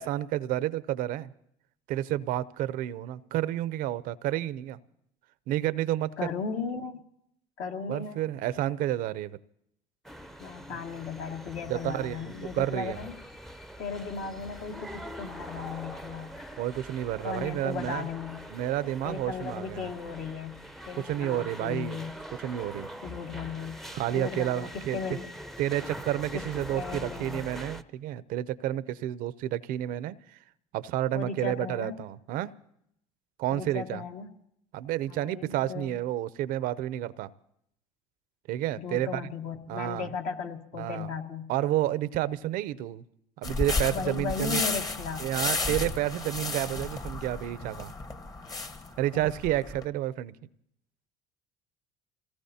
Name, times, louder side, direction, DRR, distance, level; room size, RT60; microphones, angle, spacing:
voice 1, 0.0-1.3 1.9-4.8 5.5-6.1 7.9-9.4 11.7-13.0 16.6-18.1 18.5-19.9 21.0-22.0 22.4-22.9 23.9-25.2 25.6-30.4 30.7-32.5 33.4-34.0 34.7-37.3 38.5-39.2 39.7-40.1 40.7-41.1 41.5-43.0 43.4-44.6 45.2-47.9 49.0-50.3, right 13 dB, 65° right, 17 dB, 0.6 m, -30 dB
voice 2, 6.2-7.0 7.6-8.2 10.4-13.2 13.8-16.3 17.2-18.5 19.0-20.6 20.9-22.2 23.0-23.8 24.1-25.3 26.3-26.5 26.7-27.4 31.1-32.0 33.5-34.3 35.1-36.0 38.8-41.5 43.9-45.3 49.1-49.3, left 5 dB, 65° left, 2 dB, 1.9 m, -36 dB
sound 1, 10.0-27.8, equal, ahead, 0.7 m, -43 dB
sound 2, 43.4-49.8, left 3 dB, 25° left, 1.1 m, -33 dB
26.5 x 18.0 x 2.8 m, 0.74 s
supercardioid pair, 100°, 15 cm